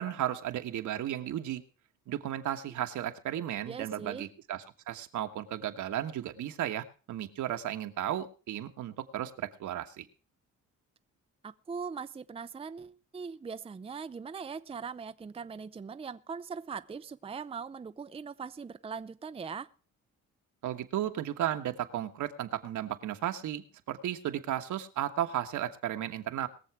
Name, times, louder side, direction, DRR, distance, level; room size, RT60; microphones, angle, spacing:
voice 1, 0.0-1.6 2.1-10.1 20.6-26.5, right 11 dB, 75° right, 1.4 m, -34 dB
voice 2, 3.6-4.3 11.4-19.7, right 6 dB, 20° right, 0.5 m, -41 dB
21.0 x 7.2 x 4.8 m
cardioid pair, 90°, 30 cm